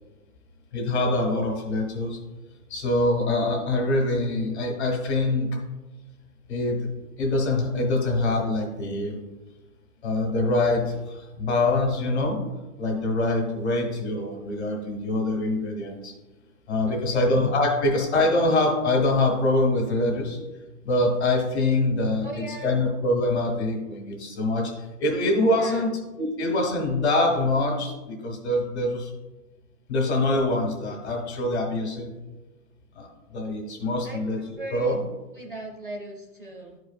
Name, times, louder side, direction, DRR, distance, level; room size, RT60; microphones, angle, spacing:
voice 1, 0.7-2.2 2.7-5.5 6.5-6.8 7.2-9.2 10.0-12.4 12.8-16.1 16.7-20.4 20.8-24.7 25.0-25.9 26.2-29.1 29.9-32.1 32.9-33.1 33.3-34.4 34.7-35.0, left 2 dB, 45° left, 2 dB, 1.8 m, -24 dB
voice 2, 16.9-17.4 17.8-18.0 22.2-22.9 25.6-25.9 34.0-35.0 35.3-36.8, right 1 dB, 35° right, 0 dB, 0.4 m, -38 dB
12.0 x 4.6 x 2.4 m, 1.1 s
hypercardioid pair, 175°, 47 cm